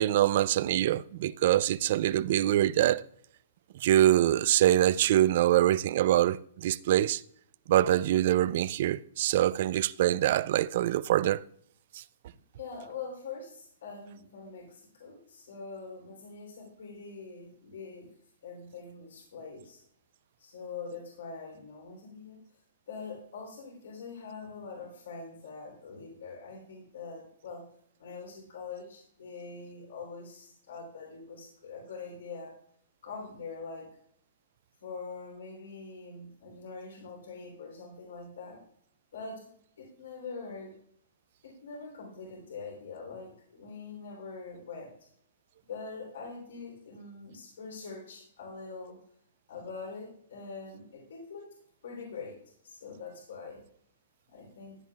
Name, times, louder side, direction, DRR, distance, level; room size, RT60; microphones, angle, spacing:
voice 1, 0.0-3.0 3.8-7.2 7.7-11.4, right 13 dB, 50° right, 0.3 m, -24 dB
voice 2, 12.6-18.1 18.4-19.8 20.4-22.4 22.9-27.6 28.0-32.5 33.0-33.9 34.8-38.6 39.1-39.5 39.8-40.7 41.4-44.9 45.7-49.0 49.5-51.5 51.8-52.4 52.6-53.6 54.3-54.8, left 4 dB, 80° left, 3.3 m, -43 dB
14.5 x 9.4 x 2.4 m
hypercardioid pair, 150°, 0 cm